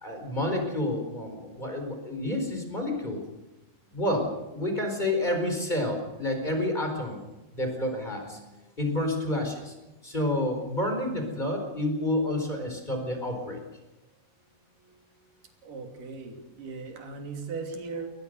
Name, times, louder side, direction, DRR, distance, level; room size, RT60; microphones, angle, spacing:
voice 1, 0.0-3.2 3.9-7.2 7.5-8.5 8.8-9.7 10.0-13.6, left 1 dB, 10° left, 4 dB, 4.3 m, -29 dB
voice 2, 15.6-18.1, right 4 dB, 65° right, 4 dB, 4.5 m, -38 dB
21.5 x 20.0 x 6.7 m, 1.1 s
omnidirectional pair, 4.3 m